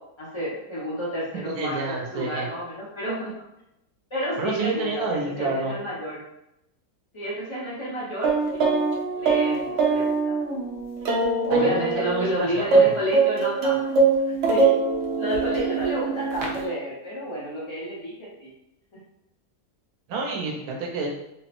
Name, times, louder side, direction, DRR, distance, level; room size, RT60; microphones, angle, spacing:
voice 1, 0.2-3.3 4.1-5.1 5.4-6.2 7.1-8.7 9.1-10.4 11.4-13.8 14.3-14.7 15.2-18.5, equal, 40° left, -8 dB, 0.4 m, -30 dB
voice 2, 1.4-2.5 4.4-5.8 11.5-13.0 20.1-21.1, right 3 dB, 85° right, 1 dB, 1.1 m, -29 dB
sound 1, 8.2-12.3 12.7-16.7, right 4 dB, 60° right, 0.8 m, -22 dB
3.6 x 2.0 x 2.8 m, 0.86 s
omnidirectional pair, 1.6 m